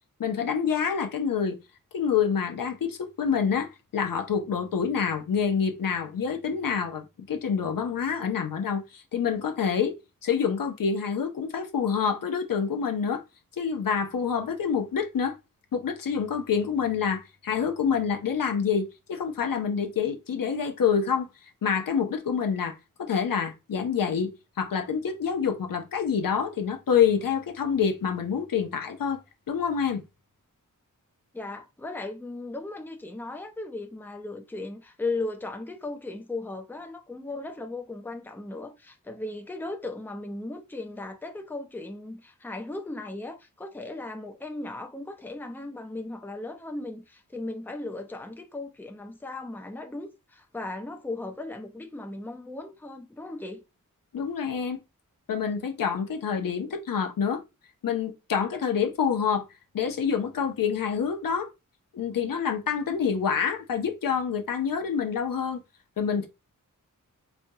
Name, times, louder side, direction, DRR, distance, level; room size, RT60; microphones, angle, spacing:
voice 1, 0.2-1.6 1.9-9.9 10.2-13.2 13.6-15.3 15.7-21.3 21.6-24.3 24.6-29.2 29.5-30.0 54.1-54.8 55.3-57.4 57.8-59.4 59.7-61.5 61.9-65.6 66.0-66.3, left 7 dB, 85° left, 0.7 m, -27 dB
voice 2, 31.3-53.6, left 2 dB, 5° left, 0.6 m, -37 dB
4.3 x 2.2 x 2.7 m
wide cardioid pair, 75°, 33 cm